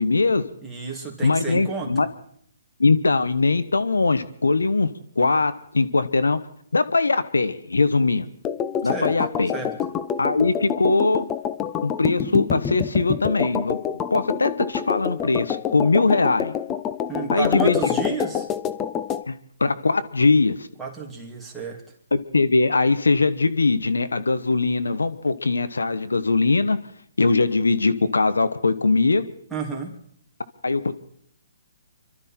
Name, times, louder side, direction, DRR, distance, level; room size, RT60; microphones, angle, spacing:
voice 1, 0.0-0.4 1.2-2.1 2.8-6.4 6.7-8.3 8.8-9.5 10.2-11.2 11.8-13.8 14.1-16.5 17.3-17.8 19.3-20.7 22.1-26.8 27.2-29.3 30.6-30.9, left 3 dB, 90° left, 12 dB, 1.1 m, -21 dB
voice 2, 0.6-2.0 8.8-9.1 9.5-9.7 17.1-18.5 20.8-21.8 29.5-29.9, right 5 dB, 5° right, -4 dB, 2.8 m, -31 dB
sound 1, 8.4-19.2, left 8 dB, 20° left, 0.6 m, -27 dB
26.0 x 12.5 x 4.4 m, 0.64 s
hypercardioid pair, 140°, 0 cm